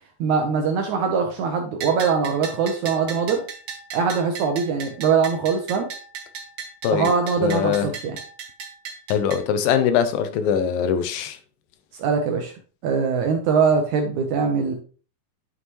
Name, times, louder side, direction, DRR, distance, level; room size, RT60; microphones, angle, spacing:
voice 1, 0.2-3.4 3.9-5.9 6.9-8.2 12.0-12.5 12.8-14.7, right 5 dB, 75° right, 1.8 m, -22 dB
Bell, 1.8-9.4, right 6 dB, 60° right, 1.5 m, -36 dB
voice 2, 7.4-7.9 9.1-11.4, left 8 dB, 80° left, 2.4 m, -22 dB
9.7 x 5.7 x 3.1 m
omnidirectional pair, 4.2 m